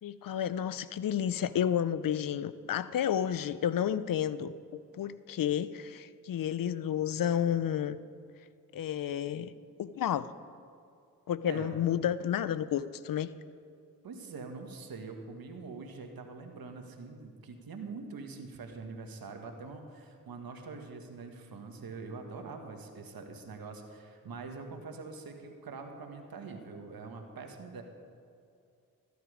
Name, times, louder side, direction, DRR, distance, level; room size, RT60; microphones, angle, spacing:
voice 1, 0.0-8.0 8.7-9.5 9.8-10.3 11.3-13.3, left 9 dB, 65° left, 16 dB, 0.6 m, -31 dB
voice 2, 11.5-11.8 14.0-27.8, right 4 dB, 75° right, 4 dB, 1.6 m, -44 dB
14.0 x 10.5 x 5.0 m, 2.5 s
supercardioid pair, 45°, 36 cm